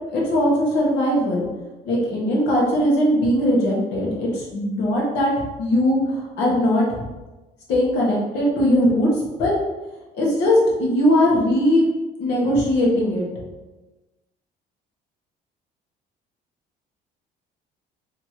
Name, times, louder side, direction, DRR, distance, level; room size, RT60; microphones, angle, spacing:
voice 1, 0.1-1.5 1.8-6.8 7.7-9.5 10.1-11.8 12.2-13.2, equal, 85° left, -4 dB, 1.4 m, -20 dB
3.3 x 3.0 x 4.4 m, 1.1 s
cardioid pair, 110°, 17 cm